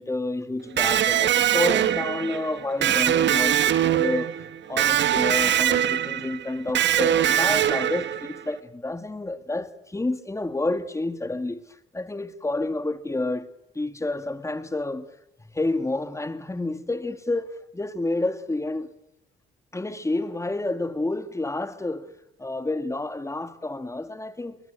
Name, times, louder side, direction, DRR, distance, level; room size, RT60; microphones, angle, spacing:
voice 1, 0.0-11.6 11.9-13.5 13.7-15.1 15.5-18.9 19.7-22.1 22.4-24.6, left 2 dB, 15° left, 2.2 m, -29 dB
Electric guitar, 0.8-8.5, right 11 dB, 65° right, 1.6 m, -22 dB
23.5 x 20.5 x 8.1 m
cardioid pair, 90°, 20 cm